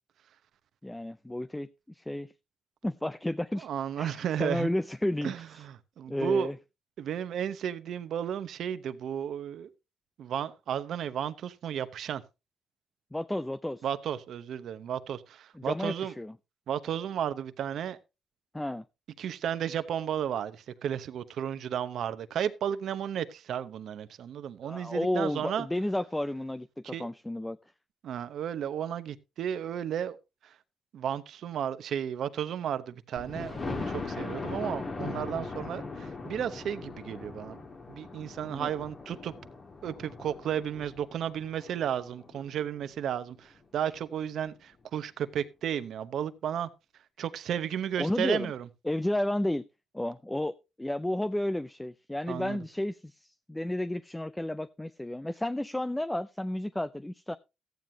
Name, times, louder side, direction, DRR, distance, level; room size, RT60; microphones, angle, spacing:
voice 1, 0.8-2.3 2.8-3.7 4.0-5.6 6.1-6.6 13.1-13.8 15.6-16.3 18.5-18.8 19.2-19.3 24.6-27.6 38.4-38.7 48.0-48.5 48.8-49.7 49.9-57.4, left 1 dB, 10° left, 0.5 m, -32 dB
voice 2, 3.6-4.7 5.2-6.5 7.0-9.7 10.2-12.2 13.8-16.1 16.7-18.0 19.2-25.7 26.9-27.1 28.0-30.2 30.4-30.5 30.9-37.6 37.9-39.3 39.8-46.7 47.2-48.7 52.3-52.6, right 9 dB, 70° right, 0.9 m, -33 dB
Thunder, 33.2-42.9 43.4-43.5 44.0-44.1 44.3-44.4, left 3 dB, 35° left, 2.1 m, -40 dB
14.5 x 9.3 x 2.8 m
cardioid pair, 90°, 0 cm